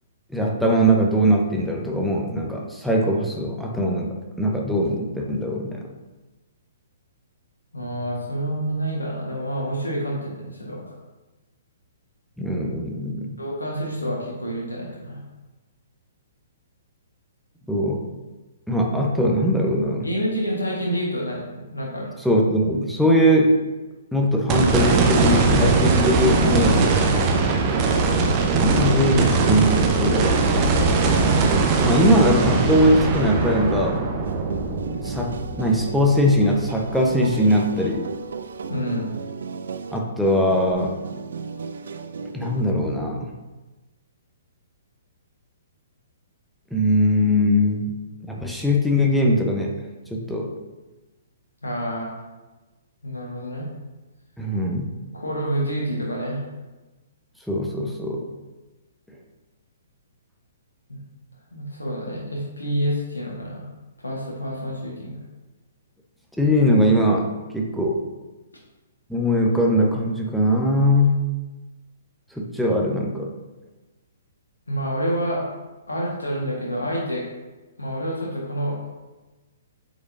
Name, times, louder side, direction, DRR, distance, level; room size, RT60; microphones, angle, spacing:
voice 1, 0.3-5.8 12.4-13.3 17.7-18.0 18.7-20.1 22.2-23.6 24.1-26.9 28.5-30.4 31.8-34.0 35.0-38.1 39.9-41.0 42.3-43.3 46.7-47.9 48.3-49.8 50.1-50.5 54.4-54.9 57.5-58.3 66.4-68.0 69.1-71.2 72.3-73.3, equal, ahead, -1 dB, 0.9 m, -21 dB
voice 2, 7.7-10.8 13.4-15.2 20.0-22.1 38.7-39.1 51.6-52.1 53.0-53.7 55.1-56.4 60.9-61.0 61.5-63.6 64.0-65.2 74.7-75.4 75.9-77.2 77.8-78.8, equal, 80° left, -3 dB, 1.4 m, -28 dB
sound 1, 24.5-36.8 37.3-37.4 40.7-40.8, right 4 dB, 30° right, 0.8 m, -20 dB
sound 2, 25.5-43.0, right 5 dB, 65° right, 0.4 m, -35 dB
8.2 x 5.0 x 2.6 m, 1.1 s
figure-of-eight pair, 120°, 0 cm